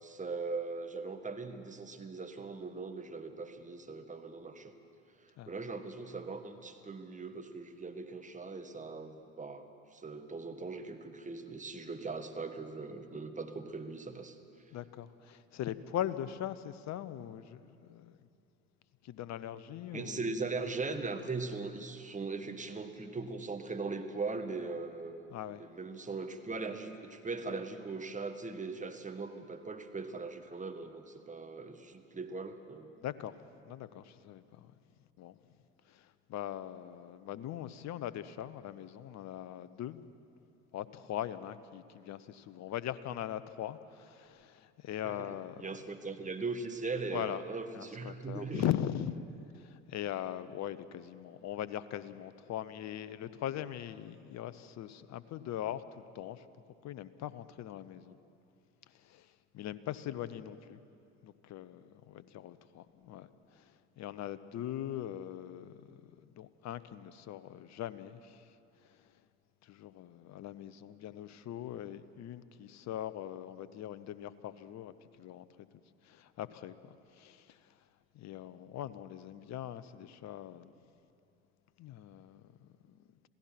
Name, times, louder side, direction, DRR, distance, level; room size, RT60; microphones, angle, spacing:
voice 1, 0.0-4.7 5.2-14.4 19.9-32.9 45.0-45.3 45.6-48.6, right 3 dB, 20° right, 7 dB, 1.8 m, -40 dB
voice 2, 14.7-18.3 19.0-20.3 25.3-25.6 33.0-33.4 33.6-34.7 35.2-35.4 35.9-40.0 40.7-45.6 47.1-47.4 47.7-49.2 49.5-56.5 56.8-58.2 59.0-60.8 61.2-68.4 68.9-69.0 69.6-74.9 75.2-75.5 76.0-77.6 78.1-80.7 81.8-83.0, left 11 dB, 50° left, 15 dB, 1.0 m, -41 dB
27.0 x 16.5 x 6.0 m, 2.6 s
hypercardioid pair, 65°, 35 cm